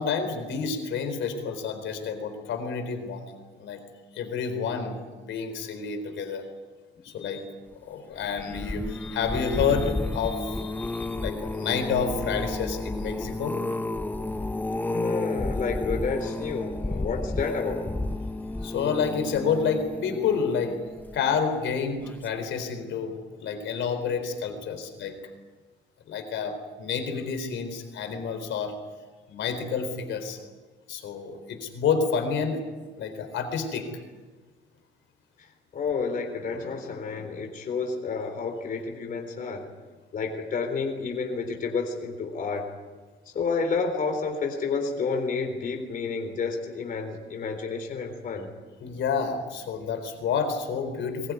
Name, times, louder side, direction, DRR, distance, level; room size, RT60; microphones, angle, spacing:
voice 1, 0.0-3.3 3.6-3.8 4.1-6.5 7.0-7.4 7.8-13.6 18.6-20.8 21.1-25.2 26.1-28.7 29.3-30.4 30.9-32.6 33.0-33.9 48.8-51.3, left 6 dB, 85° left, 7 dB, 4.1 m, -29 dB
sound 1, 8.2-21.5 22.0-22.4 22.6-22.7, left 2 dB, 10° left, 0.7 m, -32 dB
voice 2, 14.9-17.8 35.4-35.5 35.7-39.6 40.1-42.6 43.3-48.5, left 4 dB, 45° left, 3 dB, 3.8 m, -30 dB
22.5 x 21.0 x 9.6 m, 1.4 s
cardioid pair, 165°, 19 cm